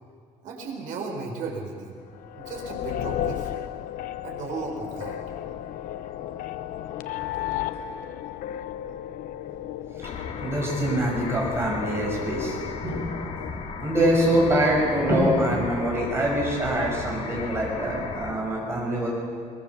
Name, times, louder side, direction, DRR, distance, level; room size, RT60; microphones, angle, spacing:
voice 1, 0.4-2.0 2.3-3.5 4.2-5.2, right 4 dB, 75° right, 1 dB, 4.7 m, -35 dB
sound 1, 2.1-13.5, left 11 dB, 90° left, 0.8 m, -34 dB
voice 2, 9.9-13.3 13.8-19.1, right 1 dB, 20° right, -2 dB, 5.8 m, -25 dB
sound 2, 10.0-18.3, left 5 dB, 60° left, 2.5 m, -36 dB
22.0 x 21.0 x 7.0 m, 2.2 s
cardioid pair, 180°, 14 cm